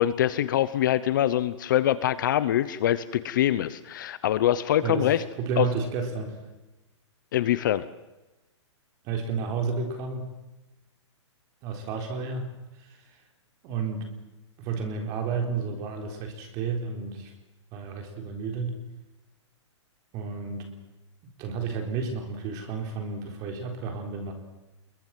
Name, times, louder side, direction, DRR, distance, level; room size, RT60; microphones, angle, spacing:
voice 1, 0.0-5.2 5.6-5.7 7.3-7.8, left 12 dB, 40° left, 15 dB, 0.9 m, -24 dB
voice 2, 4.8-5.1 5.4-6.4 9.0-10.3 11.6-12.5 12.8-13.0 13.6-14.1 14.6-17.3 17.7-18.8 20.1-20.7 21.4-24.3, right 5 dB, 25° right, 4 dB, 4.0 m, -31 dB
26.5 x 22.5 x 7.7 m, 1.0 s
hypercardioid pair, 170°, 16 cm